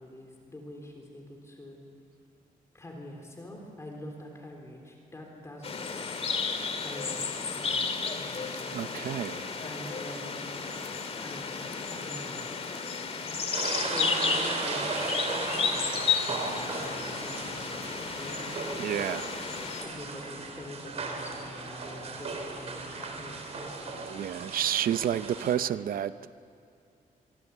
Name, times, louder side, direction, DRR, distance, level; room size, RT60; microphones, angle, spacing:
voice 1, 0.0-1.8 2.7-6.5 6.8-10.5 11.2-12.8 13.7-19.0 19.8-24.5, left 1 dB, 20° left, 1 dB, 3.5 m, -45 dB
sound 1, 5.6-19.8, left 5 dB, 40° left, 2.3 m, -33 dB
voice 2, 8.7-9.5 18.8-19.2 24.1-26.3, right 10 dB, 75° right, 14 dB, 0.7 m, -30 dB
sound 2, 13.5-25.6, right 3 dB, 45° right, 3.4 m, -36 dB
25.0 x 24.0 x 8.2 m, 2.6 s
wide cardioid pair, 160°, 15 cm